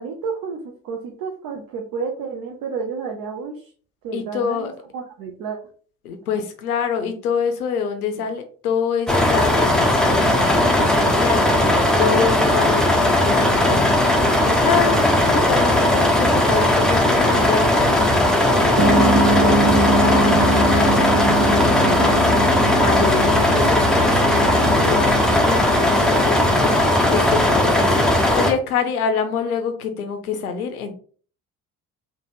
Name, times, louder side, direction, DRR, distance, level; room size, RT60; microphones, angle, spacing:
voice 1, 0.0-3.5 4.0-5.6, right 5 dB, 50° right, 1 dB, 0.7 m, -31 dB
voice 2, 4.1-4.7 6.0-19.1 19.4-30.9, left 6 dB, 80° left, 7 dB, 0.6 m, -27 dB
sound 1, 9.1-28.5, left 1 dB, ahead, 0.5 m, -17 dB
sound 2, 18.8-26.9, right 1 dB, 80° right, 0.9 m, -22 dB
3.2 x 2.1 x 3.1 m, 0.43 s
figure-of-eight pair, 45°, 44 cm